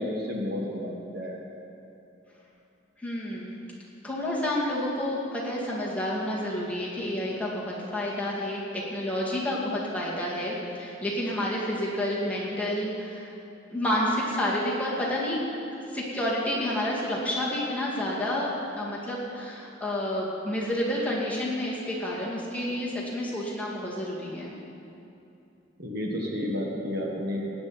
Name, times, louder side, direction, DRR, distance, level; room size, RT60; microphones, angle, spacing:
voice 1, 0.0-1.4 25.8-27.5, left 1 dB, 55° right, -1 dB, 1.6 m, -31 dB
voice 2, 3.0-3.6 4.0-13.3 13.7-15.4 15.9-18.5 18.8-24.5, left 1 dB, 5° left, -6 dB, 2.2 m, -29 dB
17.5 x 9.6 x 4.3 m, 2.8 s
head